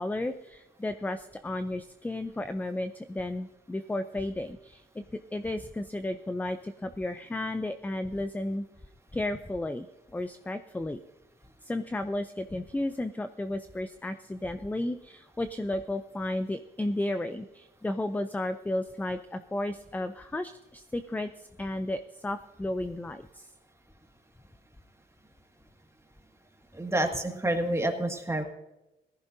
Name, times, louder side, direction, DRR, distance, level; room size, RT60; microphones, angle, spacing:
voice 1, 0.0-5.0 5.3-8.7 9.1-9.9 10.1-11.0 11.6-21.3 21.6-23.5, left 1 dB, 10° left, 10 dB, 0.5 m, -33 dB
voice 2, 26.7-28.4, right 1 dB, 15° right, 3 dB, 2.0 m, -28 dB
17.5 x 14.5 x 2.7 m, 0.98 s
cardioid pair, 90°, 20 cm